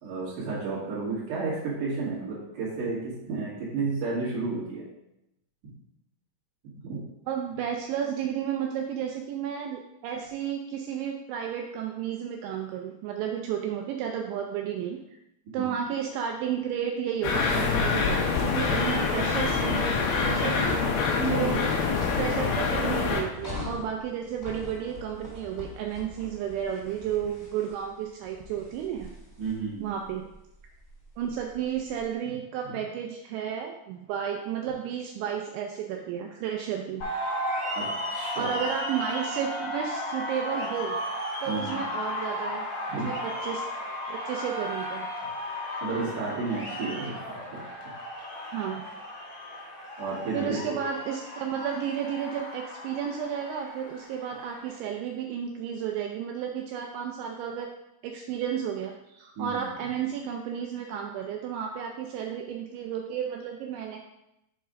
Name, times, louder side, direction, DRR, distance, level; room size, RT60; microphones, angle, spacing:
voice 1, 0.0-3.0 3.3-4.8 5.6-5.7 6.8-7.0 15.5-15.7 21.2-21.8 29.4-29.9 32.7-32.8 37.7-38.6 41.5-41.8 42.9-43.0 45.8-47.6 50.0-50.8 59.4-59.7, right 4 dB, 55° right, -9 dB, 2.4 m, -32 dB
voice 2, 7.3-15.0 15.5-20.0 20.2-20.8 21.3-21.7 22.1-29.1 29.8-30.3 31.2-37.0 38.1-41.0 41.4-42.7 43.0-43.6 44.1-45.1 48.5-48.8 50.3-57.7 58.0-64.0, right 8 dB, 85° right, 2 dB, 2.6 m, -32 dB
sound 1, 17.2-23.2, left 5 dB, 90° left, 2.1 m, -26 dB
sound 2, 18.3-32.0, left 2 dB, 20° left, 1.2 m, -43 dB
sound 3, 37.0-54.8, equal, 45° left, 1.7 m, -35 dB
7.3 x 4.7 x 5.0 m, 0.86 s
omnidirectional pair, 5.9 m